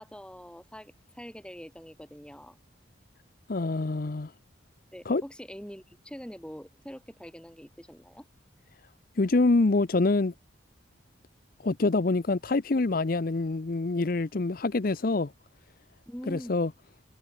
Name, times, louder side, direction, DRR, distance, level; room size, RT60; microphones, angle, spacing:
voice 1, 0.0-2.6 4.9-8.3 16.0-16.5, equal, 5° left, 3.3 m, -44 dB
voice 2, 3.5-4.3 5.1-5.2 9.2-10.3 11.6-15.3 16.3-16.7, left 3 dB, 50° left, 0.6 m, -25 dB
head